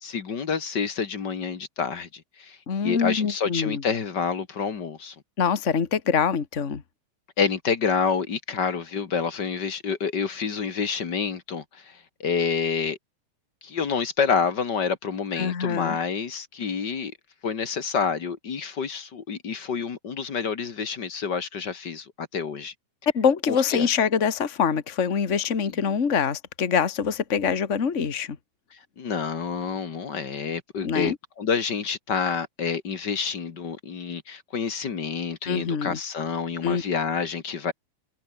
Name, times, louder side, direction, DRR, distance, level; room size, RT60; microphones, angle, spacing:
voice 1, 0.0-2.6 2.8-5.1 7.4-13.0 13.6-17.1 17.4-22.7 23.5-23.9 28.7-37.7, left 6 dB, 40° left, 1.7 m, -28 dB
voice 2, 2.7-3.8 5.4-6.8 15.3-16.0 23.1-28.4 30.8-31.2 35.4-36.0 36.6-36.8, left 6 dB, 60° left, 0.7 m, -24 dB
omnidirectional pair, 4.2 m